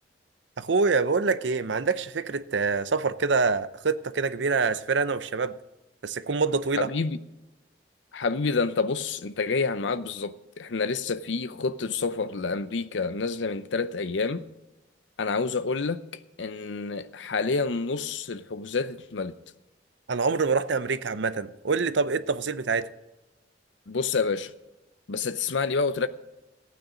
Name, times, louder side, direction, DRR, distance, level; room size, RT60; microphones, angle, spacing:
voice 1, 0.6-5.5 6.0-6.9 20.1-22.9, right 4 dB, 80° right, 0.7 m, -25 dB
voice 2, 6.8-7.2 8.1-14.5 15.2-16.0 16.4-19.4 23.9-24.5 25.1-26.1, left 4 dB, 80° left, 0.6 m, -28 dB
15.5 x 9.2 x 5.1 m
head